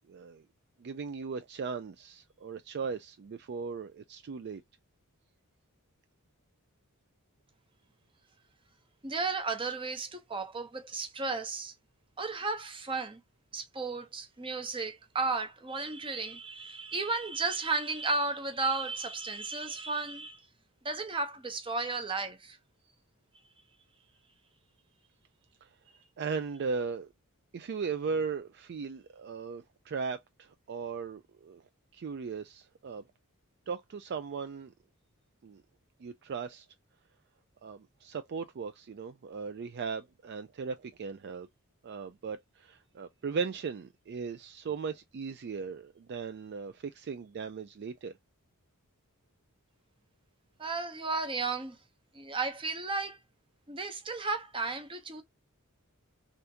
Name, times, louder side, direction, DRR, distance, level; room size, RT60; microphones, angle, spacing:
voice 1, 0.1-0.4 0.8-4.6 25.6-25.7 26.2-27.1 27.5-31.6 31.9-33.0 33.7-34.7 35.4-35.6 36.0-36.7 37.6-41.5 41.8-48.1, right 5 dB, 50° right, 0.4 m, -37 dB
voice 2, 9.0-11.7 12.2-13.2 13.5-20.4 20.8-22.6 50.6-51.8 52.1-53.2 53.7-55.2, right 3 dB, 25° right, 0.8 m, -34 dB
3.5 x 2.5 x 2.8 m
head